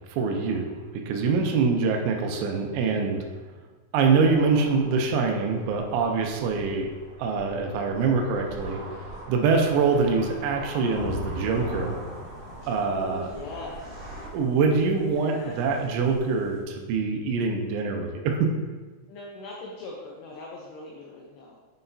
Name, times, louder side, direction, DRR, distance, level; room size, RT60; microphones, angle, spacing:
voice 1, 0.1-3.2 3.9-6.9 7.2-8.8 9.3-12.0 12.7-13.3 14.3-18.5, right 4 dB, 85° right, 3 dB, 3.1 m, -24 dB
sound 1, 4.2-14.3, right 1 dB, 70° right, 3.0 m, -42 dB
Thunder / Rain, 10.9-16.6, left 2 dB, 60° left, 3.5 m, -41 dB
voice 2, 12.6-14.3 15.1-15.7 19.1-21.6, left 2 dB, 75° left, -2 dB, 2.7 m, -41 dB
9.5 x 5.8 x 2.7 m, 1.3 s
omnidirectional pair, 5.3 m